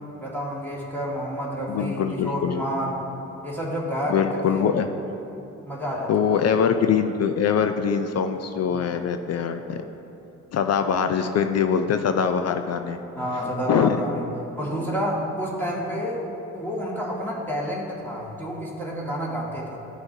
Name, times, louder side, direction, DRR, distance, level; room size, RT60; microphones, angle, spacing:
voice 1, 0.0-2.9 3.4-4.7 5.6-6.1 13.2-14.2 14.6-16.2 16.5-19.8, equal, 5° left, -6 dB, 1.8 m, -29 dB
voice 2, 1.7-2.6 4.1-4.9 6.1-9.8 10.5-13.0 13.7-14.0, left 7 dB, 40° left, 8 dB, 0.5 m, -23 dB
13.0 x 5.7 x 2.7 m, 3.0 s
hypercardioid pair, 50°, 39 cm